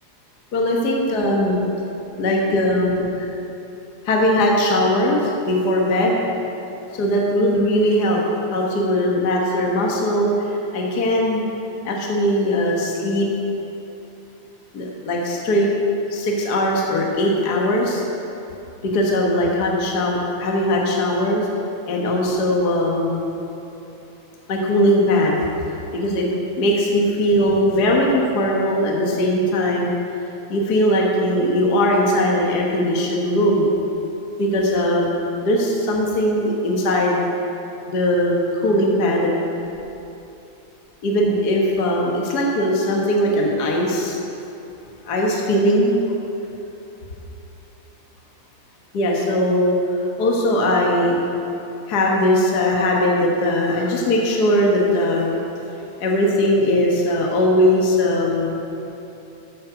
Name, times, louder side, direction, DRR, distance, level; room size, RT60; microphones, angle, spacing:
voice 1, 0.5-1.6 2.2-3.3 4.0-6.2 6.9-8.2 8.5-11.4 11.8-13.3 14.7-15.7 16.1-18.0 18.8-21.5 21.9-23.3 24.5-25.4 25.9-26.3 26.6-29.9 30.5-33.7 34.4-35.2 35.4-37.2 37.9-39.3 41.0-44.2 45.0-45.9 48.9-49.7 50.2-51.2 51.9-55.3 56.0-58.6, left 1 dB, 45° left, -1 dB, 1.4 m, -19 dB
13.5 x 7.8 x 5.8 m, 2.9 s
omnidirectional pair, 3.4 m